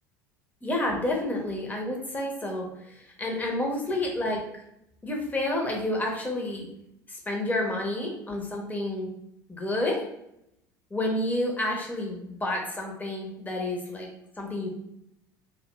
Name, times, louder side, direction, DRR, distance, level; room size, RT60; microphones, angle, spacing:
voice 1, 0.6-4.6 5.0-6.7 7.1-9.1 9.5-10.0 10.9-14.1 14.4-14.7, left 1 dB, 15° left, 0 dB, 0.7 m, -30 dB
2.9 x 2.3 x 2.2 m, 0.80 s
figure-of-eight pair, 70°, 11 cm